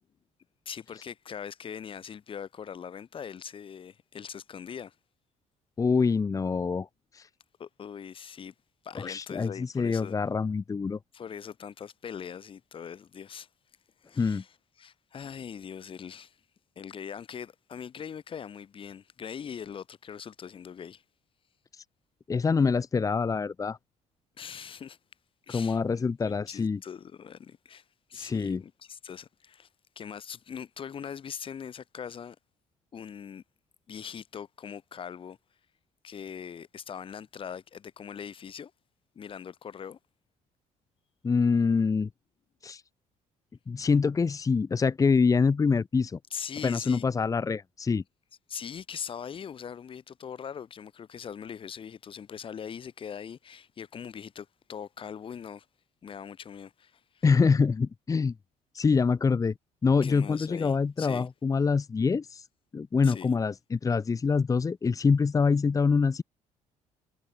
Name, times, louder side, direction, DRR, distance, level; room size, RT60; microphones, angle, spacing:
voice 1, 0.7-4.9 7.6-8.5 8.8-10.2 11.1-13.5 14.0-14.5 14.8-16.4 16.8-21.0 24.4-25.0 25.5-27.8 28.1-29.7 30.0-32.4 32.9-33.4 33.9-35.4 36.0-38.7 39.2-40.0 46.3-47.1 48.5-55.7 56.0-57.2 60.0-61.3 63.0-63.4, left 7 dB, 40° left, 3.8 m, -41 dB
voice 2, 5.8-6.9 7.1-7.3 8.9-11.0 14.2-14.4 22.3-23.8 25.5-26.8 28.1-28.6 41.2-42.1 42.6-42.8 43.7-46.2 46.6-48.0 57.2-58.3 58.7-59.5 59.8-62.4 62.7-66.2, left 5 dB, 25° left, 1.5 m, -25 dB
cardioid pair, 120°, 14 cm